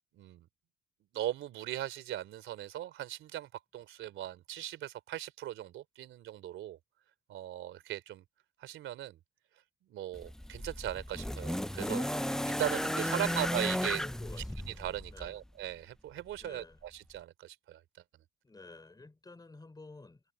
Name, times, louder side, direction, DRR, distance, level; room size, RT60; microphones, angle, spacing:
voice 1, 0.1-0.5 1.1-6.8 7.3-8.2 8.6-9.2 9.9-14.0 14.6-17.8, right 12 dB, 80° right, 3.3 m, -39 dB
sound 1, 10.1-15.4 16.4-16.5, left 1 dB, 5° left, 0.5 m, -34 dB
voice 2, 13.7-14.7 15.1-15.4 16.4-16.8 18.4-20.3, left 3 dB, 20° left, 4.8 m, -51 dB
cardioid pair, 90°, 20 cm